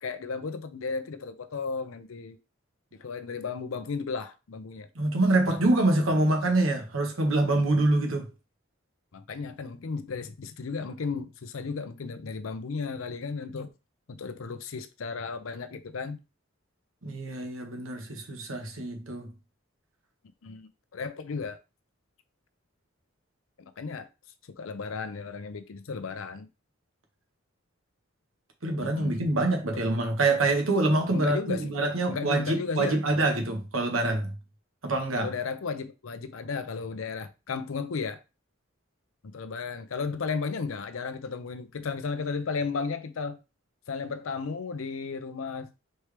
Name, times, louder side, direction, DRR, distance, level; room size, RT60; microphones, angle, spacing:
voice 1, 0.0-2.4 3.0-4.9 5.5-5.6 9.1-13.7 14.1-16.2 20.4-21.6 23.6-24.1 24.6-26.5 28.8-29.3 31.1-31.7 32.1-33.0 35.2-38.2 39.3-43.4 43.9-45.7, left 5 dB, 85° left, 0.6 m, -34 dB
voice 2, 4.9-8.3 17.0-19.3 28.6-34.3 34.8-35.3, right 2 dB, 85° right, 1.2 m, -25 dB
4.3 x 3.3 x 3.3 m
head